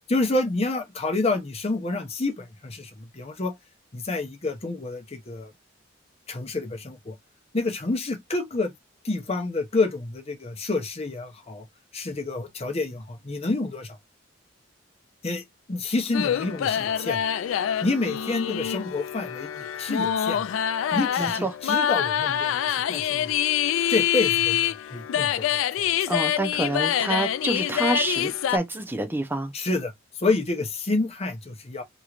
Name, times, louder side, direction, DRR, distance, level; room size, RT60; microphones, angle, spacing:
voice 1, 0.0-3.5 3.9-5.5 6.3-7.1 7.5-8.7 9.0-11.7 11.9-14.0 15.2-17.2 17.8-20.4 20.9-23.3 23.9-25.6 26.0-26.1 29.5-29.9 30.2-31.8, left 3 dB, 35° left, 0.8 m, -28 dB
sound 1, 16.1-28.6, left 10 dB, 85° left, 0.3 m, -25 dB
voice 2, 21.2-21.5 26.1-29.5, right 2 dB, 10° right, 0.6 m, -27 dB
3.0 x 3.0 x 2.5 m
head